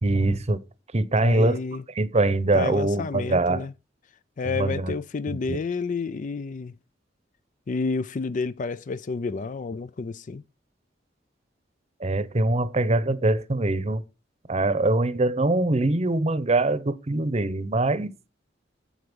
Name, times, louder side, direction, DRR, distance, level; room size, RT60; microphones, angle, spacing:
voice 1, 0.0-0.6 0.9-1.6 1.9-3.7 4.4-4.9 5.3-5.6 12.0-14.0 14.5-18.1, right 2 dB, 35° right, 0.8 m, -23 dB
voice 2, 1.2-1.8 2.5-3.7 4.4-6.7 7.7-10.4, left 4 dB, 45° left, 0.4 m, -30 dB
7.9 x 7.9 x 5.3 m
head